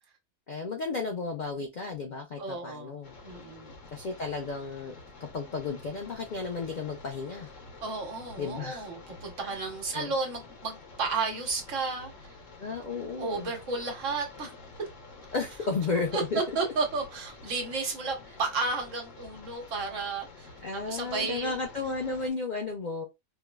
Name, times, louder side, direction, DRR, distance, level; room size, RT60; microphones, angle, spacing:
voice 1, 0.5-3.2 3.9-4.9 5.2-7.5 8.4-8.9 9.4-9.6 9.9-10.1 12.6-13.5 15.3-16.4 20.6-23.0, left 4 dB, 90° left, 0.4 m, -33 dB
voice 2, 2.4-2.9 3.2-3.7 7.8-12.3 13.2-14.5 16.1-21.5, right 4 dB, 60° right, 1.2 m, -33 dB
sound 1, 3.0-22.3, left 3 dB, 60° left, 1.2 m, -49 dB
4.5 x 2.0 x 2.2 m
omnidirectional pair, 1.5 m